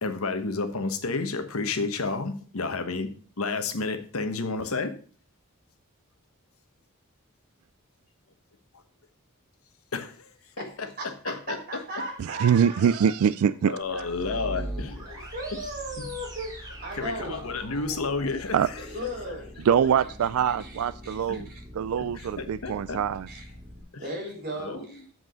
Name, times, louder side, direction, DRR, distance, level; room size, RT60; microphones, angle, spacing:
voice 1, 0.0-3.1 3.4-4.9 9.9-10.9 11.2-11.6 13.6-15.3 17.0-18.8 21.3-21.4 22.1-23.0 23.9-24.0 24.6-24.8, left 3 dB, 85° left, 1.1 m, -31 dB
voice 2, 10.6-13.1 13.9-14.3 15.0-17.4 18.8-19.6 20.6-21.4 22.2-22.3 23.3-23.5 23.9-25.0, right 1 dB, 45° right, 3.7 m, -37 dB
voice 3, 12.2-13.7 18.5-18.7 19.7-21.5 21.7-23.3, right 8 dB, 80° right, 0.3 m, -24 dB
sound 1, 13.8-23.8, equal, 20° right, 2.2 m, -42 dB
7.9 x 4.7 x 6.3 m
head